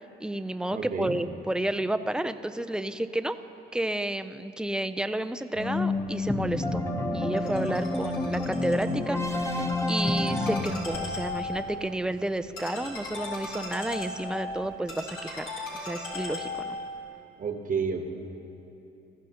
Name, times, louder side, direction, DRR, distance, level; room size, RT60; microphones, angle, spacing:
voice 1, 0.2-3.4 3.7-6.8 7.1-15.5 15.7-16.8, right 1 dB, 5° right, 11 dB, 0.4 m, -31 dB
voice 2, 0.7-1.2 17.4-18.1, right 5 dB, 40° right, 5 dB, 1.1 m, -30 dB
sound 1, 5.6-10.6, left 2 dB, 15° left, 1.0 m, -28 dB
Ringtone, 7.4-16.9, left 2 dB, 90° left, 3.5 m, -38 dB
20.0 x 14.0 x 2.9 m, 2.9 s
cardioid pair, 90°, 20 cm